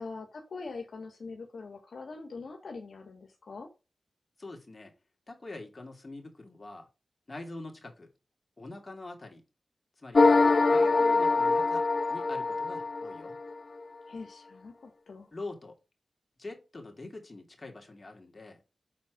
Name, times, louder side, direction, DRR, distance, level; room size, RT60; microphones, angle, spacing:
voice 1, 0.0-3.7 14.1-15.3, left 4 dB, 75° left, 1.6 m, -43 dB
voice 2, 4.4-4.9 5.3-6.9 7.3-8.1 8.6-9.4 10.0-10.2 10.7-11.8 12.1-13.4 15.3-15.8 16.4-18.6, left 2 dB, 35° left, 2.6 m, -44 dB
sound 1, 10.1-13.5, left 3 dB, 55° left, 0.5 m, -24 dB
6.3 x 4.2 x 5.1 m
cardioid pair, 65°, 0 cm